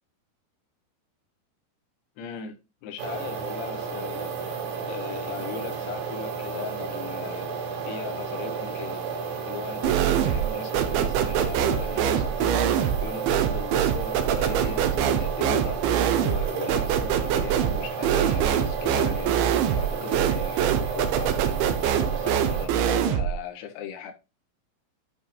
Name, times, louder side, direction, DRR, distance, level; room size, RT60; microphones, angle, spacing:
voice 1, 2.2-7.5 7.8-9.0 9.5-15.8 16.2-24.1, left 8 dB, 90° left, 4.2 m, -38 dB
sound 1, 3.0-22.7, right 5 dB, 55° right, 3.0 m, -32 dB
sound 2, 9.8-10.5 10.7-23.4, right 9 dB, 75° right, 2.9 m, -24 dB
11.0 x 5.8 x 2.5 m
omnidirectional pair, 5.9 m